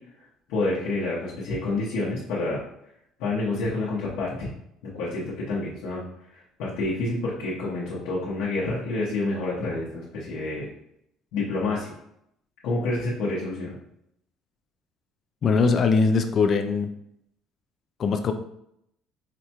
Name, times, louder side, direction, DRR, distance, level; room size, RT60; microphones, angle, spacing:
voice 1, 0.5-2.6 3.2-4.5 4.9-6.0 6.3-10.7 11.3-11.9 12.6-13.7, left 2 dB, 85° left, -7 dB, 0.9 m, -28 dB
voice 2, 15.4-16.9 18.0-18.3, left 4 dB, 45° left, 7 dB, 0.3 m, -21 dB
4.9 x 2.2 x 2.9 m, 0.75 s
cardioid pair, 115°, 0 cm